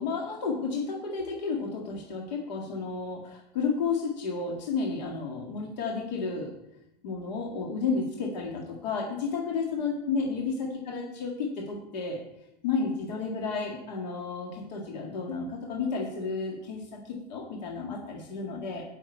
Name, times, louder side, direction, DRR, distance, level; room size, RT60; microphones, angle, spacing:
voice 1, 0.0-6.5 7.0-12.2 12.6-18.8, left 4 dB, 85° left, -1 dB, 1.9 m, -32 dB
7.9 x 6.3 x 8.0 m, 0.87 s
supercardioid pair, 170°, 21 cm